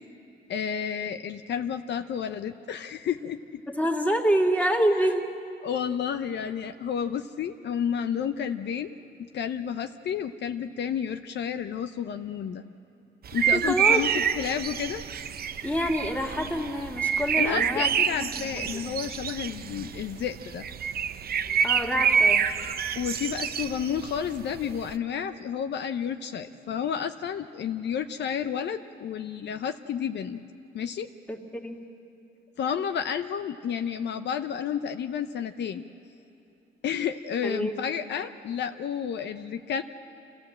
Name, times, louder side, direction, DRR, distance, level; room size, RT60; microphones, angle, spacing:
voice 1, 0.5-3.6 5.6-12.6 13.3-15.1 17.4-20.7 21.5-21.6 23.0-30.4 30.7-31.1 32.6-35.9 36.8-39.8, left 8 dB, 60° left, 8 dB, 0.7 m, -31 dB
voice 2, 3.7-5.3 13.5-14.0 15.6-18.9 21.6-22.5 31.3-31.8 37.4-37.7, equal, 5° left, 1 dB, 2.3 m, -27 dB
sound 1, 13.2-24.9, right 7 dB, 50° right, 0.7 m, -27 dB
27.0 x 15.5 x 7.6 m, 2.9 s
cardioid pair, 90°, 20 cm